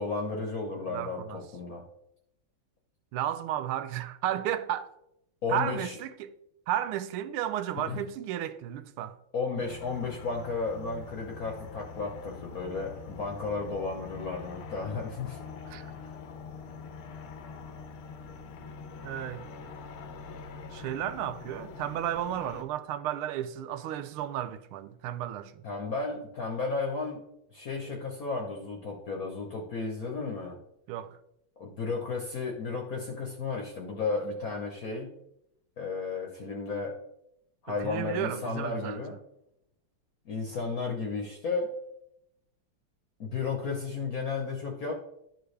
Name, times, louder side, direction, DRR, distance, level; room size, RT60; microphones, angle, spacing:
voice 1, 0.0-1.8 5.4-6.0 7.8-8.0 9.3-15.4 25.6-27.2 27.5-30.6 31.6-35.1 35.8-36.9 37.6-39.2 40.3-41.7 43.2-44.9, left 4 dB, 55° left, 1.2 m, -33 dB
voice 2, 0.9-1.4 3.1-4.9 5.5-6.3 6.7-9.2 15.7-15.9 19.0-19.5 20.7-25.6 30.9-31.2 37.7-39.0, right 11 dB, 85° right, 1.5 m, -33 dB
sound 1, 9.6-22.6, left 5 dB, 80° left, 1.6 m, -44 dB
12.5 x 4.5 x 3.2 m
omnidirectional pair, 2.3 m